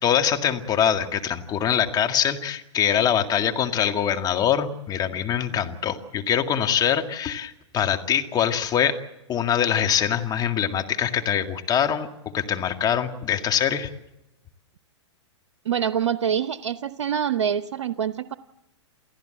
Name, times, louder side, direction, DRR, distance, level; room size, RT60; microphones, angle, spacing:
voice 1, 0.0-9.0 9.3-12.1 12.3-13.9, left 9 dB, 25° left, 6 dB, 2.0 m, -23 dB
voice 2, 15.7-18.3, right 8 dB, 80° right, 13 dB, 0.7 m, -25 dB
29.0 x 14.5 x 7.8 m, 0.91 s
hypercardioid pair, 115°, 16 cm